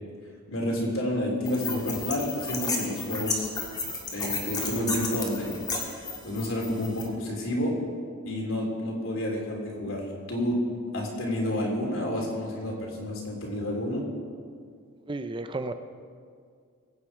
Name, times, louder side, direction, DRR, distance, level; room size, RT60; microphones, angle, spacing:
voice 1, 0.5-3.5 4.1-5.6 6.2-7.7 8.2-10.0 10.3-10.6 10.9-14.0, left 1 dB, 65° left, -1 dB, 3.4 m, -29 dB
sound 1, 1.5-7.0, left 3 dB, 20° left, 1.9 m, -33 dB
voice 2, 15.1-15.7, right 2 dB, 25° right, 9 dB, 0.5 m, -32 dB
22.5 x 9.0 x 4.9 m, 2.2 s
head